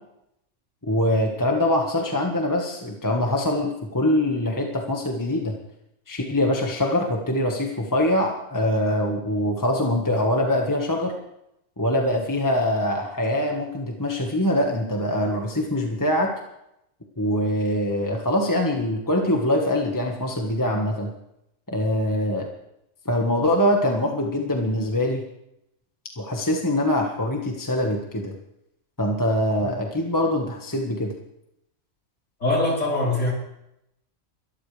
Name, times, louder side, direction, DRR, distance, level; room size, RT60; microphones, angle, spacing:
voice 1, 0.8-5.5 6.1-11.1 11.8-16.3 17.2-21.1 21.7-22.5 23.0-25.2 26.2-28.3 29.0-31.1, left 1 dB, 15° left, 1 dB, 1.6 m, -23 dB
voice 2, 32.4-33.3, left 2 dB, 65° left, -4 dB, 4.7 m, -22 dB
23.0 x 13.5 x 3.4 m, 0.82 s
omnidirectional pair, 1.4 m